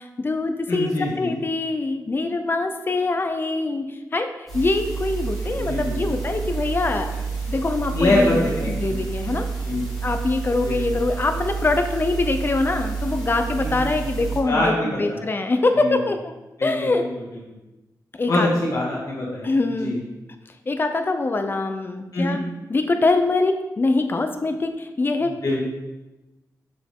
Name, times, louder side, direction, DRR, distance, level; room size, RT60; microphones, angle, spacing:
voice 1, 0.0-7.1 7.5-9.5 10.0-16.2 16.6-17.0 18.2-18.5 19.4-20.0 20.7-22.4 22.7-25.3, left 3 dB, 30° left, 7 dB, 0.5 m, -23 dB
voice 2, 0.7-1.3 5.5-6.0 7.9-9.0 9.6-9.8 10.6-10.8 13.6-14.1 14.5-15.2 15.8-16.0 16.6-17.1 18.3-19.5 19.8-20.0 22.1-22.4 25.2-25.6, left 1 dB, 55° left, -6 dB, 1.8 m, -24 dB
sound 1, 4.5-14.4, right 5 dB, 5° left, 2.0 m, -29 dB
6.6 x 5.1 x 3.6 m, 1.0 s
wide cardioid pair, 155°, 7 cm